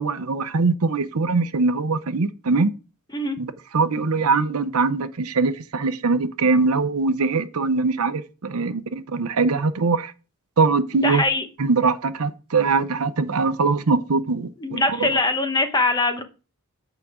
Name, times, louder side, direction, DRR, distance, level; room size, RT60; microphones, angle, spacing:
voice 1, 0.0-2.7 3.4-3.5 3.7-10.1 10.6-11.2 11.6-15.1, right 4 dB, 70° right, 0.7 m, -22 dB
voice 2, 10.9-11.5 14.6-16.2, left 2 dB, 20° left, 0.9 m, -22 dB
8.3 x 5.0 x 4.9 m
head